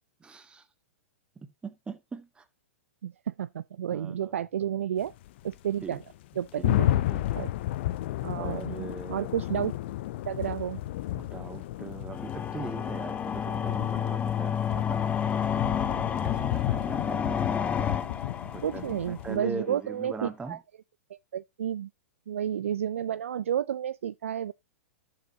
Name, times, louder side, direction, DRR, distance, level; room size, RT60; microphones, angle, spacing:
voice 1, 0.2-0.6 1.3-2.4 3.9-4.4 5.8-6.0 6.6-7.5 8.3-9.3 11.1-15.0 16.2-17.5 18.4-20.6, right 4 dB, 15° right, 1.7 m, -41 dB
voice 2, 3.0-5.1 5.4-6.0 6.4-7.0 7.3-7.5 8.2-8.8 9.1-9.7 10.2-10.8 18.6-20.6 21.3-21.9 22.3-24.5, right 10 dB, 70° right, 0.4 m, -31 dB
sound 1, 5.0-19.4, left 14 dB, 50° left, 0.5 m, -33 dB
sound 2, 12.1-19.1, left 8 dB, 20° left, 0.8 m, -30 dB
13.5 x 7.1 x 2.8 m
figure-of-eight pair, 105°, 8 cm